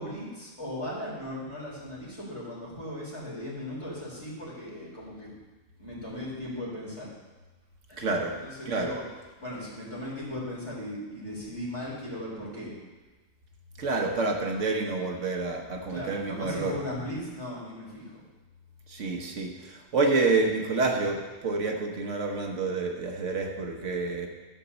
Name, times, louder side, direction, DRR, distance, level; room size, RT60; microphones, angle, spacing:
voice 1, 0.0-5.3 5.8-7.1 7.9-9.0 9.4-12.7 15.9-18.2, left 1 dB, 20° left, -6 dB, 3.7 m, -37 dB
voice 2, 8.0-8.4 8.7-9.0 13.8-16.8 18.9-24.3, right 3 dB, 65° right, 2 dB, 1.4 m, -28 dB
11.5 x 5.2 x 6.9 m, 1.2 s
omnidirectional pair, 1.4 m